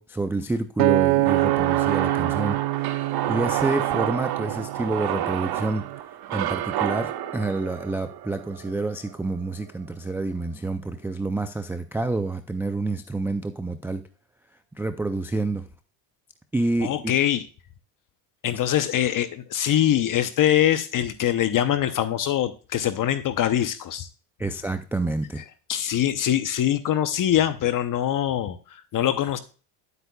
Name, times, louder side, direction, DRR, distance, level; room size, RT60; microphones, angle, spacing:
voice 1, 0.0-2.6 2.9-5.9 6.3-14.0 14.8-15.6 16.5-17.1 18.5-18.6 24.4-25.4, right 2 dB, 5° right, 9 dB, 0.3 m, -28 dB
Acoustic guitar, 0.8-5.1 5.7-6.0, right 19 dB, 90° right, 0.6 m, -25 dB
sound 1, 1.2-9.4, right 12 dB, 50° right, 0.9 m, -29 dB
voice 2, 16.8-17.4 18.4-24.1 25.4-25.5 25.7-29.4, left 11 dB, 40° left, 12 dB, 0.7 m, -23 dB
10.5 x 8.2 x 2.3 m, 0.36 s
supercardioid pair, 100°, 48 cm